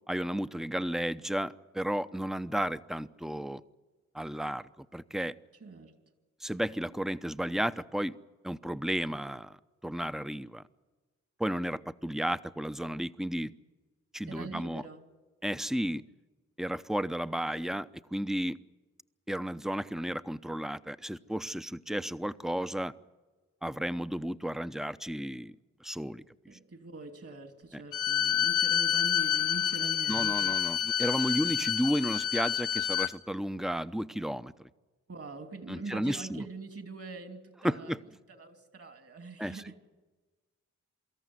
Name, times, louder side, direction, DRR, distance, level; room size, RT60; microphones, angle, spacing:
voice 1, 0.1-3.6 4.1-5.4 6.4-8.2 8.4-9.6 9.8-10.6 11.4-13.5 14.1-14.8 15.4-16.0 16.6-18.6 19.3-22.9 23.6-25.5 25.8-26.2 27.7-27.8 30.1-34.7 35.7-36.5 37.6-38.0 39.4-39.6, equal, ahead, 13 dB, 0.8 m, -33 dB
voice 2, 5.6-5.9 14.3-15.0 26.5-30.6 35.1-37.9 38.3-39.7, right 3 dB, 50° right, 7 dB, 3.0 m, -43 dB
Bowed string instrument, 27.9-33.1, left 10 dB, 80° left, 1.4 m, -28 dB
24.5 x 14.0 x 9.6 m, 1.3 s
supercardioid pair, 45°, 31 cm